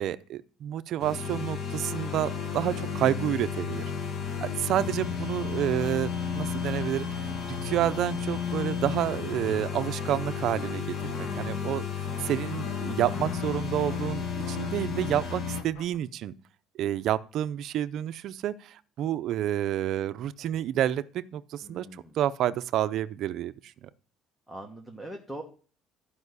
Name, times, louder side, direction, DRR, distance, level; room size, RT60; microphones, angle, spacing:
voice 1, 0.0-3.8 4.4-7.1 7.5-11.9 12.2-16.3 16.8-21.9 22.2-23.5, right 11 dB, 55° right, 0.6 m, -29 dB
sound 1, 1.0-15.6, left 6 dB, 50° left, 1.6 m, -33 dB
sound 2, 1.8-3.1 3.5-4.7 5.5-16.0, left 4 dB, 75° left, 3.4 m, -48 dB
voice 2, 11.1-11.5 21.6-22.1 24.5-25.4, right 1 dB, ahead, 1.3 m, -42 dB
13.0 x 5.5 x 8.1 m
cardioid pair, 150°, 0 cm